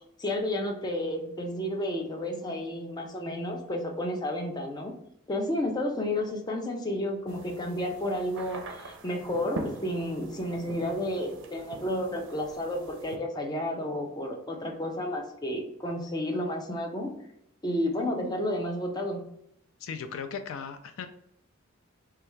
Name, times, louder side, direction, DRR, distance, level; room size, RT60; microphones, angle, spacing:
voice 1, 0.2-4.9 5.3-17.1 17.6-19.2, left 1 dB, 20° left, 2 dB, 0.5 m, -31 dB
sound 1, 7.3-13.2, right 2 dB, 60° right, 0.5 m, -43 dB
voice 2, 19.8-21.1, left 6 dB, 75° left, 8 dB, 0.3 m, -37 dB
3.2 x 2.3 x 3.1 m, 0.77 s
head